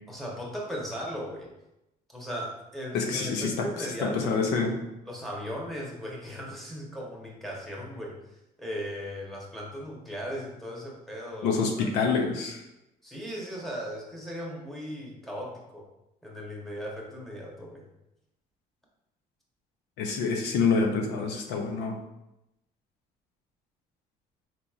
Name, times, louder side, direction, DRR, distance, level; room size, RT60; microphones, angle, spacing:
voice 1, 0.1-1.5 2.1-4.5 5.0-11.9 13.0-15.8 16.2-17.8, equal, ahead, -3 dB, 0.9 m, -37 dB
voice 2, 2.9-4.8 11.4-12.6 20.0-22.0, left 4 dB, 90° left, 3 dB, 0.6 m, -27 dB
4.0 x 2.9 x 2.4 m, 0.90 s
cardioid pair, 110°, 17 cm